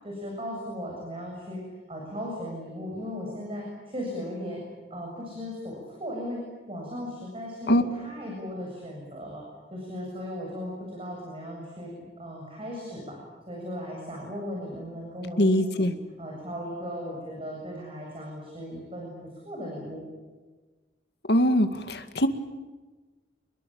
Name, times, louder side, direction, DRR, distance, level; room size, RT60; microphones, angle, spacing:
voice 1, 0.0-1.6 1.9-4.6 4.9-6.4 6.7-9.4 9.7-13.2 13.5-15.9 16.2-19.1 19.4-20.0, equal, 30° right, -1 dB, 7.6 m, -37 dB
voice 2, 15.4-15.9 21.3-22.3, equal, 65° left, 8 dB, 2.2 m, -22 dB
28.5 x 22.0 x 8.9 m, 1.3 s
head